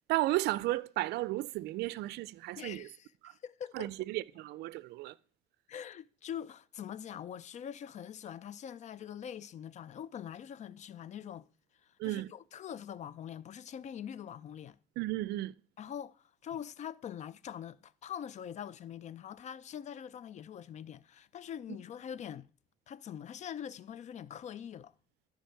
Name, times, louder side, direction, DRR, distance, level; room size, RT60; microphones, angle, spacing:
voice 1, 0.1-2.9 3.2-3.3 3.7-5.1 12.0-12.3 15.0-15.5, right 17 dB, 75° right, 0.4 m, -34 dB
voice 2, 2.5-3.9 5.7-11.5 12.0-14.8 15.8-22.5 22.9-24.9, left 9 dB, 45° left, 0.4 m, -44 dB
13.0 x 5.1 x 4.6 m
cardioid pair, 110°, 17 cm